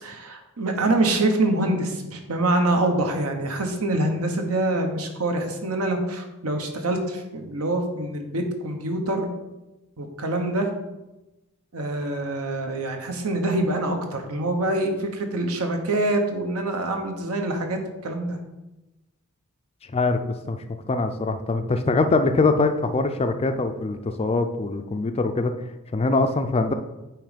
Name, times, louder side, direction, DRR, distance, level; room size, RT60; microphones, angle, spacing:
voice 1, 0.0-9.3 10.0-10.7 11.7-18.4, right 2 dB, 75° right, 4 dB, 1.0 m, -25 dB
voice 2, 20.9-25.5 25.9-26.7, left 3 dB, 25° left, 8 dB, 0.4 m, -23 dB
8.7 x 3.1 x 5.1 m, 1.0 s
head